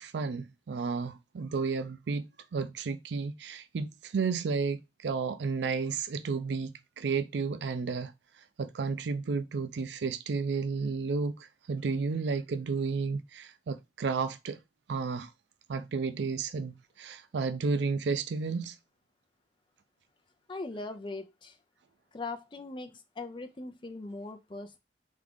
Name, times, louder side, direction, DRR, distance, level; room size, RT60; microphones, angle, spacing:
voice 1, 0.0-8.1 8.6-14.6 14.9-15.3 15.7-18.8, right 4 dB, 75° right, 0.4 m, -32 dB
voice 2, 20.5-21.6 22.1-24.8, left 3 dB, 25° left, 0.5 m, -40 dB
3.6 x 3.5 x 3.5 m
head